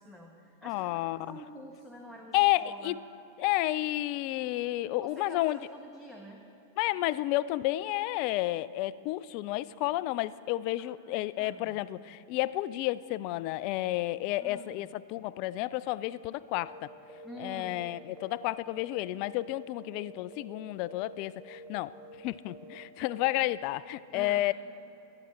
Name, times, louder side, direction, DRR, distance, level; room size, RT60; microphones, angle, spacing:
voice 1, 0.0-3.0 5.0-6.4 10.8-10.9 11.4-11.8 14.4-14.9 17.2-17.9 24.1-24.4, equal, ahead, 0 dB, 1.2 m, -48 dB
voice 2, 0.6-1.4 2.3-3.0 3.4-5.6 6.8-16.9 17.4-21.9 22.2-24.5, left 17 dB, 45° left, 18 dB, 0.3 m, -31 dB
sound 1, 16.5-16.8 17.1-17.4 17.6-19.0 19.2-19.5 19.8-20.1 20.3-20.6 20.9-21.1 21.4-21.7 21.9-22.2 22.5-22.7 23.0-23.3, right 1 dB, 35° right, 1.7 m, -49 dB
24.0 x 9.8 x 4.2 m, 2.9 s
figure-of-eight pair, 90°, 0 cm